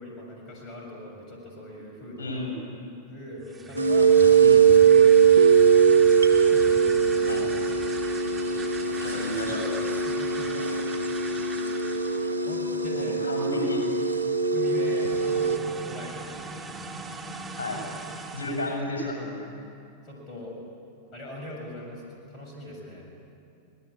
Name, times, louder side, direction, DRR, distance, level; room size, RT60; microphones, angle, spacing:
voice 1, 0.0-2.3 3.1-4.6 4.8-5.2 6.5-7.3 10.1-10.7 11.3-11.9 12.4-13.2 13.6-13.7 14.5-16.4 20.0-20.6 21.1-23.2, left 1 dB, 30° left, -1 dB, 7.0 m, -41 dB
voice 2, 2.2-2.5 4.4-4.6 7.3-7.5 9.0-9.7 12.9-13.8 17.6-17.8 18.3-19.4, left 1 dB, 65° left, 1 dB, 7.8 m, -32 dB
Watering can, 3.4-12.4 14.5-18.8, right 3 dB, 15° right, 3.1 m, -40 dB
sound 1, 3.8-15.6, right 6 dB, 90° left, 1.6 m, -21 dB
26.5 x 20.5 x 8.8 m, 2.6 s
figure-of-eight pair, 90°, 0 cm